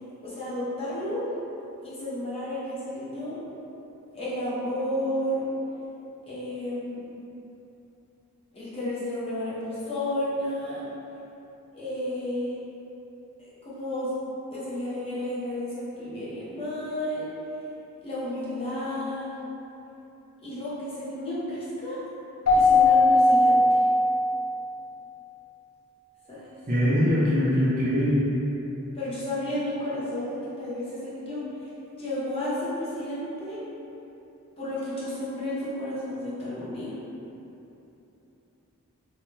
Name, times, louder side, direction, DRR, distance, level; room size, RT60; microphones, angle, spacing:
voice 1, 0.2-1.2 1.8-3.4 4.1-5.4 6.2-7.0 8.5-10.8 11.7-12.5 13.4-14.1 14.5-17.3 18.0-19.3 20.4-22.0 22.6-23.8 26.3-26.5 28.9-31.4 32.0-33.6 34.6-36.9, left 1 dB, 25° left, -10 dB, 0.6 m, -32 dB
Keyboard (musical), 22.5-24.7, left 2 dB, 70° left, 0.5 m, -19 dB
voice 2, 26.7-28.2, equal, 35° right, -8 dB, 0.5 m, -22 dB
2.6 x 2.2 x 3.0 m, 3.0 s
head